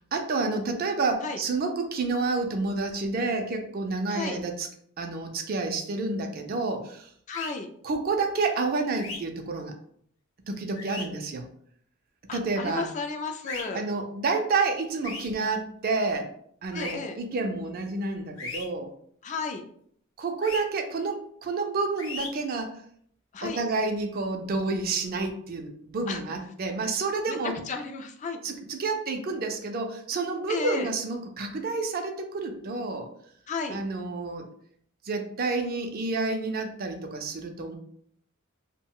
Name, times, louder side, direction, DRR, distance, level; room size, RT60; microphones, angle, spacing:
voice 1, 0.1-4.7 5.0-7.1 7.8-9.8 10.5-11.5 12.3-12.9 13.7-16.3 16.6-18.9 20.2-22.8 23.4-27.6 28.4-33.1 33.7-34.5 35.0-37.8, right 3 dB, 45° right, 5 dB, 0.4 m, -29 dB
sound 1, 7.3-7.5 9.0-9.2 10.8-11.0 13.4-13.6 15.0-15.3 16.7-16.9 18.4-18.6 20.4-20.6 22.0-22.3, left 3 dB, 85° left, 0.8 m, -36 dB
voice 2, 7.3-7.7 12.3-13.8 16.7-17.2 19.2-19.6 23.3-23.6 26.1-26.2 27.3-28.4 30.5-30.9 33.5-33.8, left 4 dB, 35° left, 6 dB, 0.3 m, -33 dB
2.3 x 2.1 x 3.5 m, 0.64 s
head